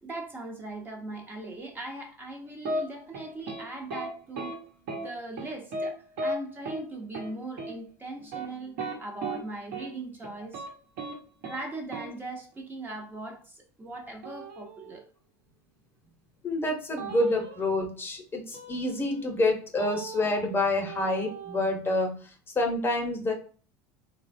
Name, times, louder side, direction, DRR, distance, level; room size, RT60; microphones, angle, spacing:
voice 1, 0.0-4.6 4.9-8.7 9.0-10.7 11.4-15.0, right 2 dB, 20° right, 0.6 m, -39 dB
sound 1, 2.6-2.8 3.1-3.6 3.9-4.1 4.4-4.5 4.9-5.1 5.4-5.9 6.2-6.3 6.7-6.8 7.1-7.3 7.6-7.7 8.2-9.4 9.7-9.9 10.2-10.7 11.0-11.1 11.4-11.6 11.9-12.1 14.2-15.0 17.0-17.7 18.5-19.4 19.8-20.6 20.9-22.1, right 2 dB, 70° right, 1.0 m, -36 dB
voice 2, 16.4-23.3, left 2 dB, 20° left, 0.7 m, -28 dB
3.1 x 2.2 x 2.5 m
supercardioid pair, 100°, 10 cm